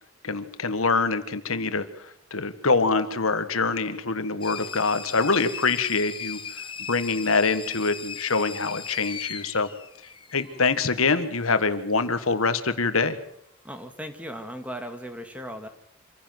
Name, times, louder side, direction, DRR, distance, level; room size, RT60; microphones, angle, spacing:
voice 1, 0.2-1.9 2.3-6.4 6.9-9.7 10.3-13.2, left 4 dB, 80° left, 10 dB, 1.7 m, -24 dB
sound 1, 4.4-10.8, left 6 dB, 25° left, 1.4 m, -38 dB
voice 2, 13.6-15.7, equal, 5° right, 7 dB, 1.9 m, -37 dB
26.5 x 15.5 x 7.8 m, 0.73 s
head